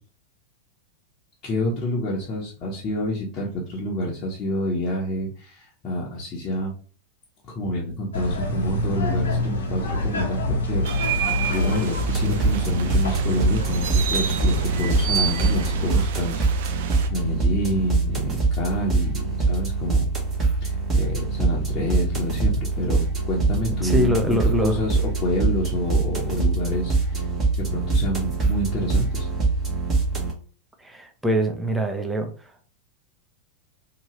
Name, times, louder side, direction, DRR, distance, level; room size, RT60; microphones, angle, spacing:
voice 1, 1.4-6.7 7.5-20.0 20.6-27.2 27.6-29.3, left 1 dB, 35° left, -5 dB, 0.9 m, -28 dB
sound 1, 8.1-16.0, left 2 dB, 75° left, 0.8 m, -27 dB
sound 2, 10.8-17.1, right 9 dB, 60° right, 0.4 m, -30 dB
sound 3, 12.0-30.3, right 3 dB, 25° right, 1.0 m, -24 dB
voice 2, 23.8-24.8 30.8-32.3, equal, 10° right, 5 dB, 0.6 m, -24 dB
2.9 x 2.7 x 3.0 m, 0.41 s
figure-of-eight pair, 90°, 0 cm